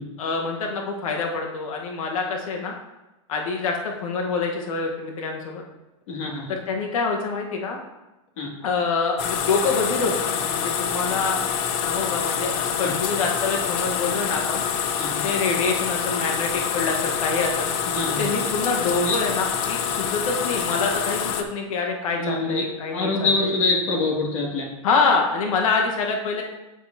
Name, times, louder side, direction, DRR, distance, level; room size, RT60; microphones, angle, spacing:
voice 1, 0.2-2.7 3.3-5.6 6.5-7.8 8.6-11.4 11.8-14.6 15.2-17.7 18.2-23.1 24.8-26.4, left 4 dB, 85° left, 1 dB, 1.3 m, -26 dB
voice 2, 6.1-6.6 8.4-8.5 12.8-12.9 15.0-15.2 17.9-18.3 18.9-19.2 22.2-22.6 22.9-24.7, left 3 dB, 65° left, -2 dB, 2.4 m, -25 dB
sound 1, 9.2-21.4, left 7 dB, 35° left, 0.7 m, -26 dB
8.9 x 7.6 x 2.8 m, 1.0 s
supercardioid pair, 160°, 17 cm